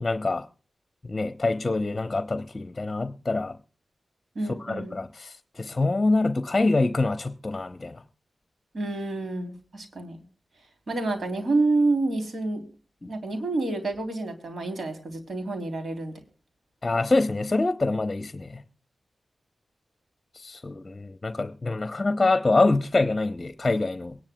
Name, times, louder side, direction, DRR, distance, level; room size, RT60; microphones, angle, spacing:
voice 1, 0.0-0.5 1.0-3.6 4.6-8.0 13.0-13.1 16.8-18.6 20.4-24.2, left 2 dB, 35° left, 10 dB, 0.8 m, -25 dB
voice 2, 4.3-5.0 8.7-10.2 10.9-12.6 13.0-16.1, right 2 dB, 70° right, 6 dB, 3.2 m, -28 dB
23.5 x 10.5 x 2.3 m, 0.36 s
cardioid pair, 45°, 0 cm